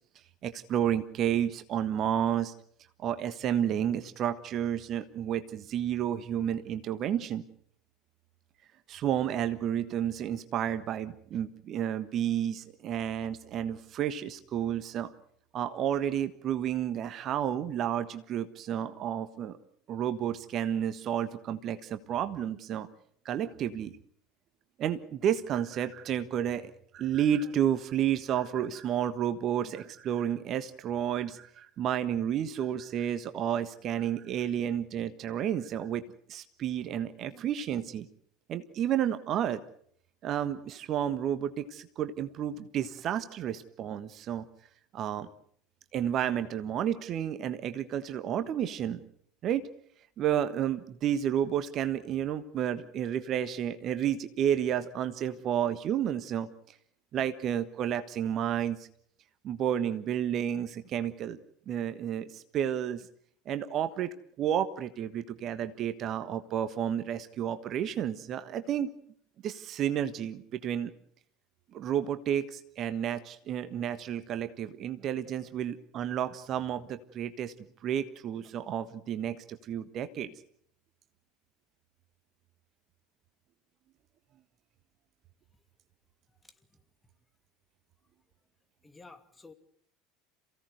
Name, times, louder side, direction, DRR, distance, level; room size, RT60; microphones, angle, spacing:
voice 1, 0.4-2.5 3.0-7.4 8.9-15.1 15.5-19.6 19.9-22.9 23.2-23.9 24.8-36.0 36.3-38.1 38.5-39.6 40.2-44.4 44.9-45.3 45.9-49.0 49.4-49.7 50.2-56.5 57.1-58.9 59.4-61.4 61.7-63.1 63.4-68.9 69.4-70.9 71.7-77.5 77.8-80.3, right 10 dB, 40° right, 12 dB, 1.4 m, -31 dB
voice 2, 86.4-86.8 88.8-89.5, left 3 dB, 15° left, 8 dB, 2.6 m, -53 dB
28.0 x 17.0 x 8.0 m, 0.65 s
figure-of-eight pair, 70°, 0 cm